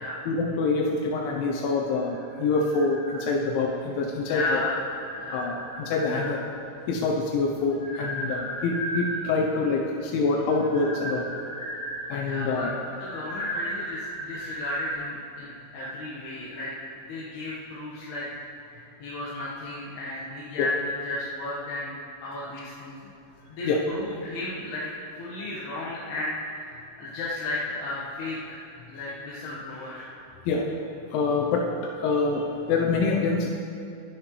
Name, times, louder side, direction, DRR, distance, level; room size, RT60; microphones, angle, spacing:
voice 1, 0.3-4.6 5.3-6.4 6.9-11.3 12.1-12.7 20.6-20.7 23.6-23.8 30.5-30.6 31.1-33.5, left 3 dB, 85° left, 0 dB, 3.3 m, -26 dB
sound 1, 1.9-3.7 4.2-6.6 7.3-9.5 10.4-14.9, right 1 dB, 15° left, 1.2 m, -37 dB
voice 2, 4.3-4.8 5.2-5.5 12.2-12.7 13.0-16.7 17.0-18.3 18.7-23.1 23.5-24.9 25.2-28.6 28.9-30.1, left 2 dB, 65° left, -8 dB, 3.3 m, -34 dB
24.0 x 9.8 x 3.3 m, 2.7 s
omnidirectional pair, 5.4 m